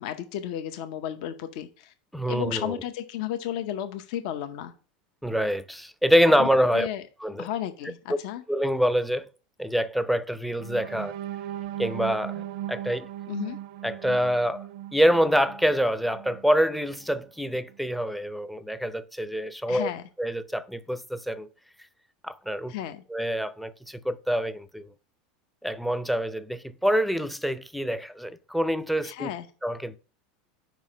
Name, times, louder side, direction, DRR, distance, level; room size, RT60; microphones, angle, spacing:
voice 1, 0.0-1.9 2.3-4.7 6.4-6.5 6.7-7.0 7.4-8.4 13.3-13.6 19.7-20.0 22.7-23.0 29.0-29.5, left 11 dB, 65° left, 0.7 m, -33 dB
voice 2, 2.1-2.8 5.2-6.9 7.2-7.5 8.5-9.3 9.6-11.1 11.8-13.1 13.8-14.6 14.9-19.9 20.2-21.5 22.2-22.7 23.1-24.8 25.6-29.3 29.6-30.0, equal, ahead, 0.4 m, -26 dB
sound 1, 10.6-16.5 17.0-17.2 17.5-17.8, right 12 dB, 70° right, 0.4 m, -38 dB
5.1 x 4.7 x 5.6 m
supercardioid pair, 125°, 4 cm